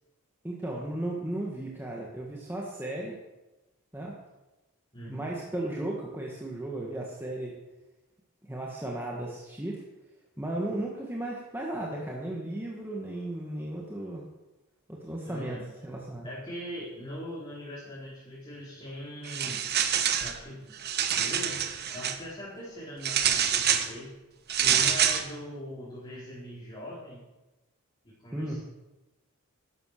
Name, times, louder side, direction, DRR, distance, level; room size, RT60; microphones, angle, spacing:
voice 1, 0.4-3.2 3.9-4.1 5.1-7.5 8.5-9.8 10.4-14.2 14.9-16.3 28.3-28.6, right 1 dB, 10° right, -3 dB, 1.7 m, -35 dB
voice 2, 4.9-5.2 15.2-15.6 16.2-19.7 20.1-20.7 21.2-24.1 24.5-27.2 28.0-28.6, equal, 25° left, -8 dB, 4.4 m, -41 dB
sound 1, 19.2-20.4 20.7-22.2 23.0-23.9 24.5-25.2, right 9 dB, 45° right, 1.1 m, -26 dB
13.0 x 11.5 x 6.7 m, 1.1 s
head